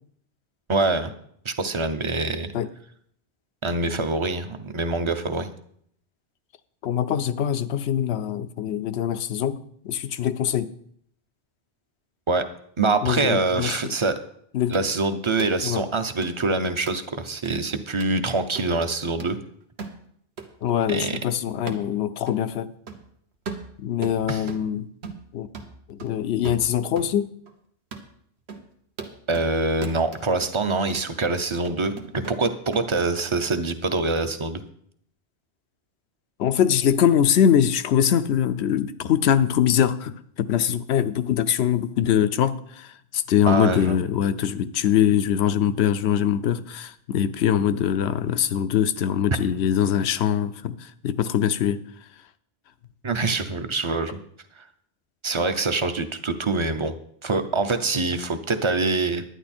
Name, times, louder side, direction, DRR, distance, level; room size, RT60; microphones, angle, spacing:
voice 1, 0.7-1.1 1.4-2.5 3.6-5.5 12.3-12.5 12.8-14.2 14.7-19.4 20.9-21.2 24.3-24.5 29.3-34.6 43.5-44.0 53.0-54.2 54.6-54.7 55.2-56.9 57.2-59.2, right 3 dB, 30° right, 10 dB, 0.7 m, -25 dB
voice 2, 6.8-9.6 9.8-10.7 13.0-14.0 14.5-14.8 15.6-15.8 20.6-22.7 23.8-24.9 25.3-25.5 25.9-27.3 36.4-51.8, left 9 dB, 80° left, 13 dB, 0.9 m, -23 dB
sound 1, 14.7-14.9 15.4-15.6 16.2-16.3 16.9-17.0 17.4-17.5 18.0-18.2 18.6-18.7 19.2-19.3 19.8-20.0 20.4-20.5 21.0-21.1 21.7-21.9 22.3-22.4 22.9-23.1 23.5-24.7 25.0-25.3 25.5-27.1 27.5-27.6 27.9-28.1 28.5-28.6 29.0-29.5 29.8-30.5 30.9-31.1 31.6-32.9, right 5 dB, 80° right, 1.4 m, -38 dB
11.0 x 9.6 x 4.3 m, 0.66 s
omnidirectional pair, 1.1 m